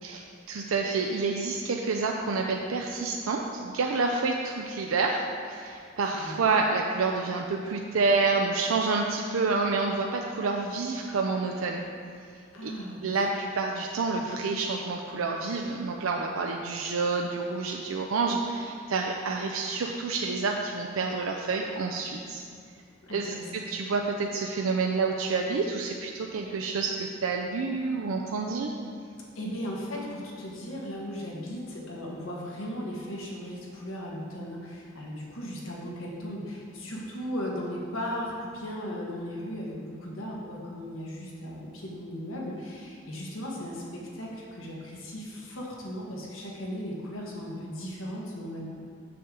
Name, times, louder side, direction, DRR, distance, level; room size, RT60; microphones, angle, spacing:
voice 1, 0.0-11.9 12.6-12.7 13.0-22.4 23.1-28.7, right 4 dB, 80° right, 1 dB, 0.5 m, -28 dB
voice 2, 12.5-13.2 23.0-23.4 29.3-43.8 44.1-48.6, equal, 80° left, -3 dB, 1.4 m, -37 dB
6.9 x 6.7 x 3.7 m, 2.3 s
head